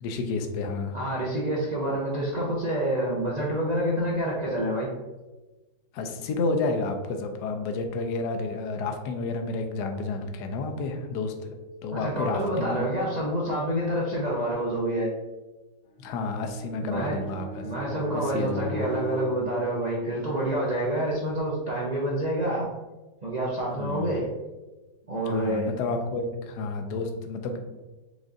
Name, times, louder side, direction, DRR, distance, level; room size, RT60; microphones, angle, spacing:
voice 1, 0.0-1.0 5.9-11.5 11.8-12.9 16.0-17.7 18.1-18.9 23.8-24.2 25.3-27.6, left 3 dB, 75° left, 5 dB, 1.2 m, -30 dB
voice 2, 0.9-4.9 11.9-15.1 16.8-17.2 17.6-22.7 23.2-24.3 25.1-25.8, right 1 dB, 60° right, -5 dB, 0.4 m, -27 dB
Bowed string instrument, 15.9-20.5, right 2 dB, 50° left, 0.7 m, -41 dB
5.0 x 2.4 x 3.8 m, 1.1 s
omnidirectional pair, 1.8 m